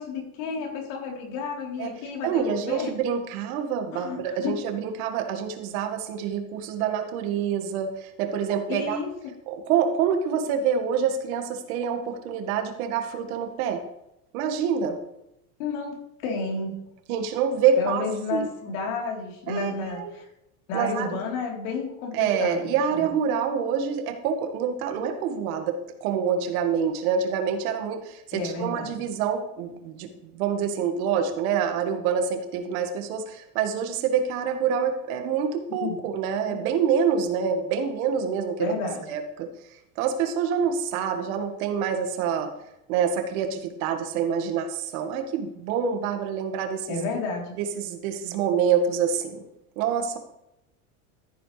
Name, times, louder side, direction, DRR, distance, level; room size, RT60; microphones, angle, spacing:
voice 1, 0.0-2.9 3.9-4.6 8.7-9.3 15.6-16.9 17.8-20.3 20.7-23.0 28.3-28.9 35.8-35.9 36.5-36.6 38.6-39.0 46.9-47.5, left 4 dB, 70° left, -1 dB, 3.9 m, -31 dB
voice 2, 2.2-9.0 9.5-13.8 14.3-15.0 17.1-18.5 19.5-20.1 20.7-21.2 22.1-38.7 39.1-39.5 40.0-42.5 42.9-47.0 47.6-49.4 49.8-50.2, right 7 dB, 70° right, 5 dB, 1.9 m, -26 dB
14.0 x 8.9 x 3.3 m, 0.83 s
supercardioid pair, 125°, 44 cm